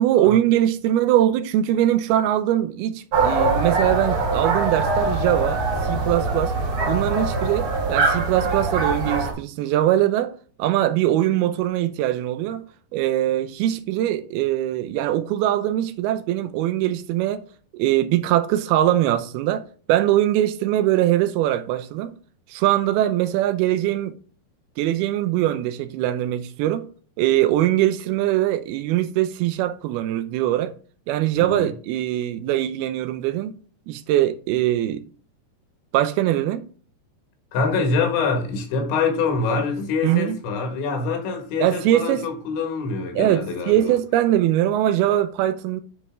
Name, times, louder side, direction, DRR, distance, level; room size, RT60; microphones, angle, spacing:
voice 1, 0.0-6.5 6.9-10.3 10.6-12.7 12.9-17.4 17.7-19.6 19.9-22.1 22.5-24.2 24.8-26.9 27.2-30.7 31.1-33.5 33.9-35.0 35.9-36.7 40.0-40.4 41.6-42.2 43.2-45.8, right 13 dB, 80° right, 2.3 m, -22 dB
sound 1, 3.1-9.3, right 3 dB, 45° right, 2.1 m, -23 dB
voice 2, 31.4-31.7 37.5-43.9, left 4 dB, 85° left, 4.1 m, -25 dB
10.0 x 4.9 x 3.7 m
omnidirectional pair, 5.2 m